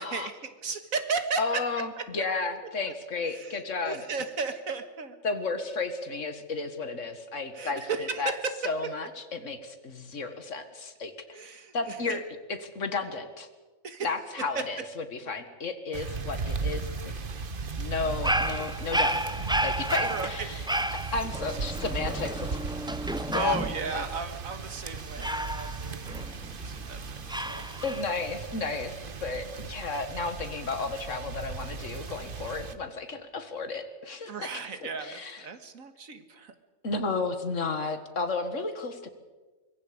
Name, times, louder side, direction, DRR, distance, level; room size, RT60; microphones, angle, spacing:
voice 1, 0.0-1.4 3.3-5.2 6.9-7.0 7.6-8.5 11.4-12.2 13.8-14.1 20.1-20.5 23.3-26.2 26.6-27.7 34.3-36.5, right 4 dB, 90° right, 9 dB, 2.1 m, -35 dB
voice 2, 1.4-4.1 5.2-8.3 8.6-11.4 11.7-12.2 12.5-13.5 14.0-17.1 17.8-19.2 19.6-22.6 23.3-23.6 23.9-24.0 26.1-26.2 27.8-35.5 36.8-39.1, left 4 dB, 65° left, 9 dB, 2.0 m, -33 dB
sound 1, 15.9-32.7, right 4 dB, 45° right, 1.2 m, -37 dB
Dog, 18.0-23.9 25.2-26.7 27.3-28.0, right 1 dB, 5° right, 0.5 m, -31 dB
24.5 x 22.5 x 5.1 m, 1.3 s
omnidirectional pair, 1.4 m